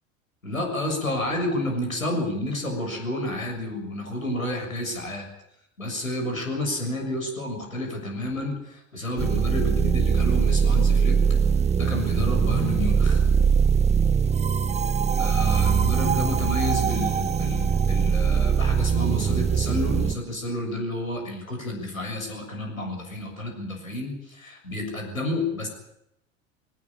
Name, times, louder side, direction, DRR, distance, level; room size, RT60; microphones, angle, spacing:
voice 1, 0.4-5.3 5.8-11.2 11.8-13.2 15.2-25.7, left 1 dB, 90° left, 3 dB, 7.0 m, -30 dB
sound 1, 9.2-20.1, right 6 dB, 15° right, 0.9 m, -22 dB
21.0 x 19.5 x 10.0 m, 0.80 s
figure-of-eight pair, 75°, 40 cm